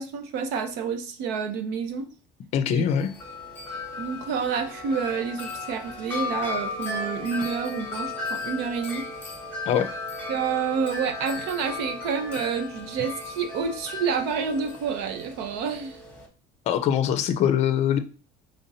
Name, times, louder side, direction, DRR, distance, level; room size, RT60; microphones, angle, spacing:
voice 1, 0.0-2.1 2.7-2.8 4.0-9.1 10.3-16.0, right 6 dB, 70° right, 8 dB, 0.8 m, -29 dB
voice 2, 2.5-3.1 9.7-9.9 16.7-18.0, left 9 dB, 40° left, 10 dB, 0.5 m, -22 dB
Wind chime, 2.9-16.3, left 3 dB, 10° left, 1.1 m, -35 dB
Wind instrument woodwind instrument, 4.4-8.7, right 2 dB, 45° right, 1.3 m, -47 dB
5.3 x 3.5 x 2.7 m, 0.36 s
cardioid pair, 170°, 18 cm